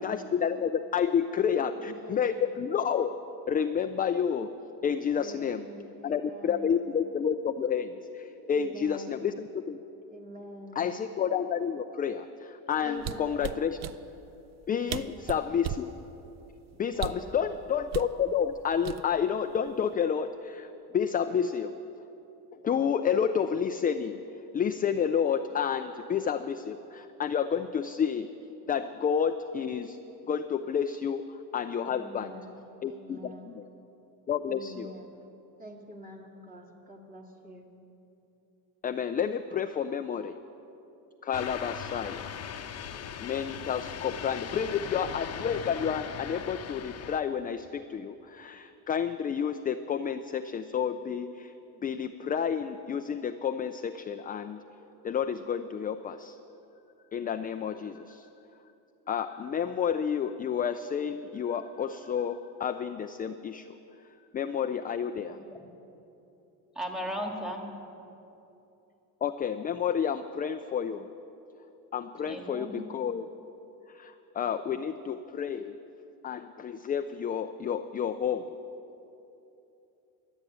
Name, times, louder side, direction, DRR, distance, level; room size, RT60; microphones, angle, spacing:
voice 1, 0.0-3.1 3.5-4.5 4.8-5.6 6.0-9.8 10.8-13.8 14.7-15.9 16.8-21.7 22.6-24.2 24.5-28.3 28.7-30.0 30.3-31.2 31.5-32.3 32.8-33.3 34.3-34.9 38.8-40.4 41.2-42.3 43.2-51.5 51.8-54.6 55.0-56.4 57.1-58.3 59.1-63.7 64.3-65.4 69.2-71.1 71.9-73.3 73.9-75.8 76.2-78.5, left 7 dB, 25° left, 8 dB, 0.3 m, -30 dB
voice 2, 1.4-2.5 5.1-6.8 8.4-9.2 10.1-10.9 12.8-13.7 14.8-15.5 16.9-17.5 31.8-33.5 34.5-35.2 35.6-37.7 39.5-39.8, left 1 dB, 20° right, 1 dB, 2.1 m, -46 dB
sound 1, 13.0-14.0 14.6-14.7 14.9-15.9 16.9-17.3 17.9-18.1 18.8-19.3 19.7-19.9, right 10 dB, 40° right, 0.5 m, -35 dB
sound 2, 41.3-47.2, left 8 dB, 40° left, 0.8 m, -39 dB
voice 3, 66.7-67.7 72.2-72.8, equal, ahead, 2 dB, 1.8 m, -35 dB
12.0 x 8.1 x 9.8 m, 2.9 s
supercardioid pair, 100°, 41 cm